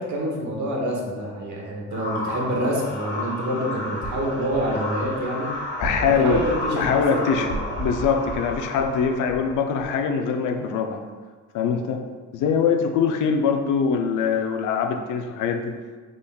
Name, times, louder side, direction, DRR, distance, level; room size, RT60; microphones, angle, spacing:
voice 1, 0.0-5.5 5.9-7.6, equal, 70° right, -1 dB, 1.1 m, -27 dB
sound 1, 1.9-10.0, left 1 dB, 40° left, 1.3 m, -32 dB
voice 2, 5.8-6.4 6.7-7.5 7.8-11.0 11.5-12.0 12.3-15.7, left 6 dB, 85° left, 5 dB, 0.5 m, -23 dB
5.3 x 3.7 x 2.3 m, 1.4 s
cardioid pair, 90°, 30 cm